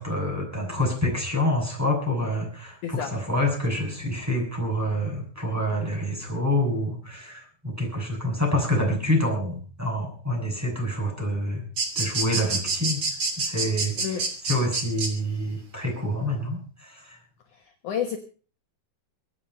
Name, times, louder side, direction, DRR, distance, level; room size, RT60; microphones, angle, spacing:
voice 1, 0.0-11.6 11.9-13.0 13.4-17.2, left 1 dB, 5° right, -1 dB, 6.2 m, -27 dB
sound 1, 11.8-15.1, right 3 dB, 35° right, 3.6 m, -27 dB
voice 2, 17.5-18.2, left 8 dB, 65° left, 5 dB, 2.4 m, -30 dB
24.5 x 8.8 x 5.5 m, 0.40 s
omnidirectional pair, 4.4 m